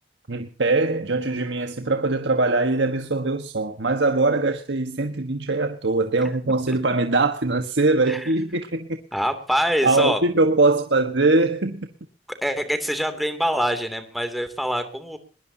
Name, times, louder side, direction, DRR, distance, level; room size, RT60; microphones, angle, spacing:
voice 1, 0.3-9.0 9.8-11.9, right 3 dB, 90° right, 1.4 m, -22 dB
voice 2, 9.1-10.2 12.4-15.2, equal, ahead, 2.8 m, -25 dB
21.0 x 21.0 x 2.9 m
head